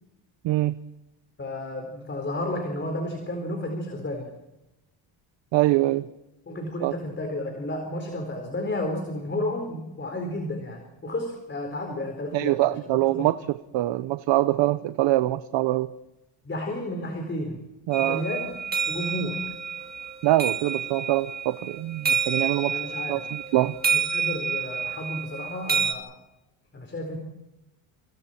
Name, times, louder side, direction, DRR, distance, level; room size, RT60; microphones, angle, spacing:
voice 1, 0.4-0.7 5.5-6.1 6.8-6.9 12.3-13.4 13.7-15.9 17.9-18.2 20.2-22.8 23.1-23.7, right 16 dB, 65° right, 12 dB, 1.0 m, -24 dB
voice 2, 1.4-4.3 6.5-12.8 13.1-13.3 16.4-17.6 18.0-18.6 18.9-19.5 22.7-23.2 23.9-26.2 26.7-27.2, left 1 dB, 25° left, 3 dB, 4.3 m, -32 dB
sound 1, 17.9-25.9, right 6 dB, 20° right, 2.5 m, -29 dB
28.5 x 27.5 x 4.5 m, 0.97 s
cardioid pair, 140°, 48 cm